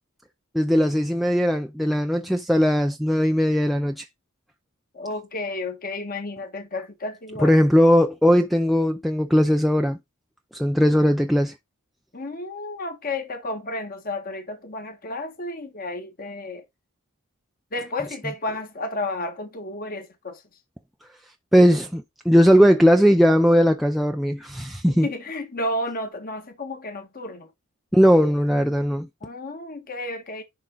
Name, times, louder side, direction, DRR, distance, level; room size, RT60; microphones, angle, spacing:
voice 1, 0.5-4.1 7.4-10.0 10.5-11.5 21.5-25.1 27.9-29.1, equal, ahead, 0.5 m, -18 dB
voice 2, 4.9-7.6 12.1-16.6 17.7-20.4 24.9-27.5 29.2-30.4, left 2 dB, 40° left, 1.5 m, -32 dB
11.0 x 3.8 x 3.9 m
head